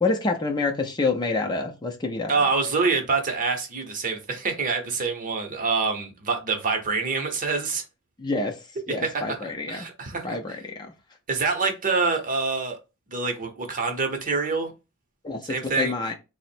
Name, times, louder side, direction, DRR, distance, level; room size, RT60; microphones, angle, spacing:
voice 1, 0.0-2.3 8.2-9.9 10.1-10.9 15.2-16.1, left 3 dB, 20° left, 0.5 m, -27 dB
voice 2, 2.3-7.8 8.9-9.4 9.7-10.4 11.3-12.8 13.1-14.7 15.4-15.9, right 4 dB, 40° right, 0.8 m, -26 dB
3.6 x 2.0 x 4.2 m
head